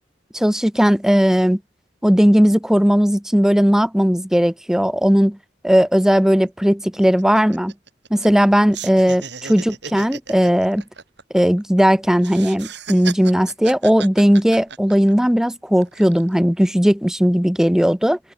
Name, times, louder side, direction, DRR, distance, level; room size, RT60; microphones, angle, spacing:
voice 1, 0.3-1.6 2.0-5.4 5.6-7.7 8.1-10.8 11.3-18.2, equal, 5° right, 0.6 m, -17 dB
sound 1, 5.9-6.0 6.3-6.5 6.8-8.5 8.7-11.8 12.2-15.3 15.8-16.3, right 7 dB, 65° right, 4.5 m, -35 dB
head